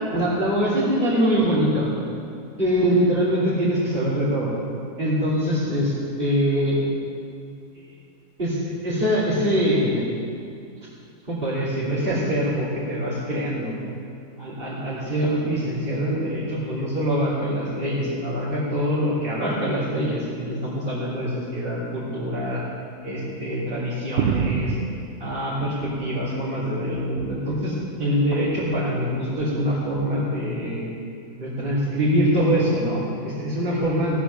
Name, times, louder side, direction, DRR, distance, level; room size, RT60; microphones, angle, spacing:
voice 1, 0.1-1.9 2.6-4.5 5.0-6.8 8.4-10.0 11.3-13.7 14.4-22.6 23.0-24.8 25.2-30.9 31.4-34.2, equal, 35° right, -12 dB, 3.2 m, -24 dB
sound 1, 24.2-26.4 26.8-27.7 28.6-28.9 29.9-30.1, right 7 dB, 60° right, 0.8 m, -29 dB
16.0 x 9.2 x 7.0 m, 2.4 s
omnidirectional pair, 1.7 m